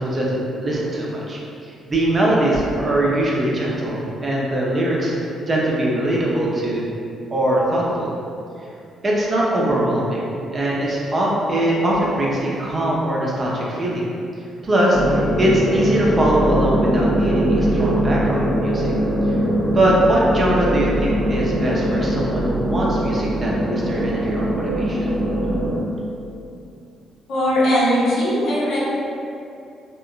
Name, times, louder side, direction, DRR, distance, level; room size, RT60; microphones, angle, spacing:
voice 1, 0.0-5.2 5.5-6.8 7.3-8.1 9.0-10.2 10.5-14.1 14.6-18.9 19.3-19.4 19.7-25.0, right 1 dB, 35° right, -4 dB, 0.6 m, -21 dB
sound 1, 14.9-25.8, equal, 20° left, 0.6 m, -21 dB
voice 2, 27.3-28.8, equal, 55° left, -8 dB, 0.8 m, -19 dB
3.5 x 2.1 x 2.4 m, 2.6 s
figure-of-eight pair, 40°, 0 cm